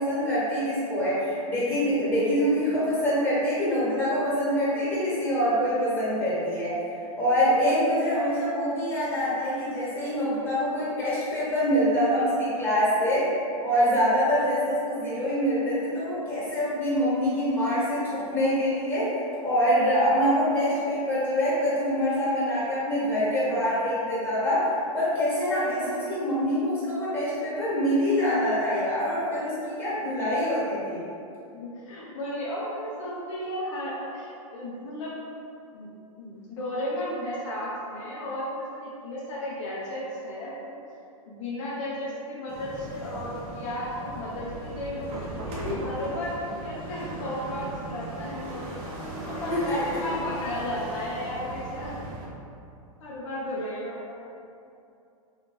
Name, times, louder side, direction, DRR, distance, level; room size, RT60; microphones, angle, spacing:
voice 1, 0.0-6.8 7.2-13.3 13.6-19.2 19.4-31.0 49.5-49.8, equal, 10° left, -10 dB, 1.4 m, -25 dB
voice 2, 19.8-20.3 25.8-26.1 29.5-29.7 31.5-35.1 35.7-35.9 36.2-40.8 41.3-49.0 49.2-51.9 53.0-54.2, left 1 dB, 60° left, -6 dB, 0.6 m, -34 dB
sound 1, 42.5-52.3, right 1 dB, 35° right, 0.7 m, -37 dB
2.6 x 2.4 x 3.0 m, 2.6 s
hypercardioid pair, 120°, 18 cm